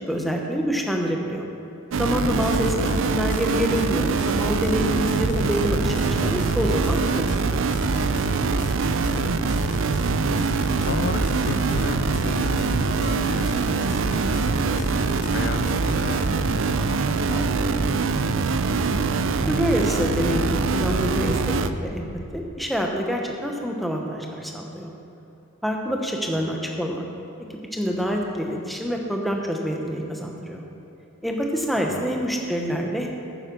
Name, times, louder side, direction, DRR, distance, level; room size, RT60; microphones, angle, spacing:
voice 1, 0.0-1.5 2.0-7.3 19.5-22.1 22.3-24.9 25.6-27.0 27.7-30.6 31.2-33.1, equal, ahead, 0 dB, 1.0 m, -26 dB
Weird Sound, 1.9-21.7, right 4 dB, 60° right, 0.4 m, -24 dB
sound 1, 2.2-16.3, left 1 dB, 35° left, 0.9 m, -34 dB
voice 2, 2.5-3.0 10.8-14.0 14.3-18.2 26.3-26.6 31.9-32.1, left 4 dB, 50° left, 7 dB, 0.4 m, -35 dB
sound 2, 3.8-22.4, left 1 dB, 75° left, 1.4 m, -34 dB
9.3 x 9.1 x 6.2 m, 3.0 s
head